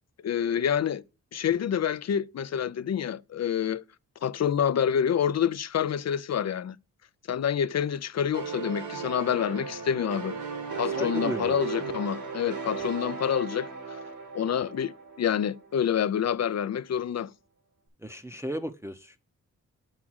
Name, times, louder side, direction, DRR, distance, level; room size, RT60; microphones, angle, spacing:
voice 1, 0.2-1.0 1.3-3.8 4.2-6.8 7.3-10.3 10.8-13.7 14.3-17.3, left 8 dB, 50° left, 0.5 m, -27 dB
sound 1, 8.3-15.8, right 5 dB, 85° right, 2.1 m, -36 dB
voice 2, 11.0-11.6 18.0-19.2, equal, 5° right, 0.7 m, -34 dB
7.4 x 3.6 x 6.2 m
cardioid pair, 60°, 35 cm